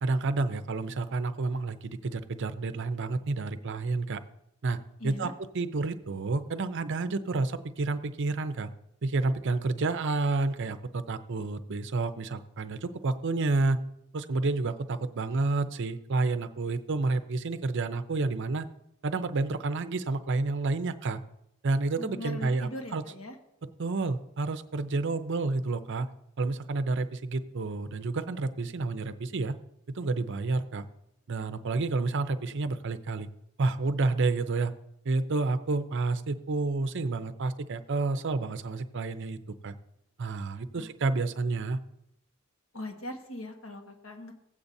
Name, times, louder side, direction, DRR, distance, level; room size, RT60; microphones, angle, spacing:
voice 1, 0.0-4.2 4.6-4.8 5.0-5.3 5.5-8.7 9.0-13.8 14.1-18.7 19.0-21.2 21.6-23.0 23.8-26.1 26.4-29.6 29.9-30.9 31.3-33.3 33.6-34.7 35.0-39.4 39.6-39.7 40.2-41.8, right 3 dB, 60° right, 11 dB, 0.6 m, -29 dB
voice 2, 5.0-5.3 22.0-23.4 40.7-40.9 42.7-44.3, left 1 dB, 75° left, 3 dB, 1.5 m, -40 dB
15.5 x 8.4 x 2.7 m, 0.80 s
head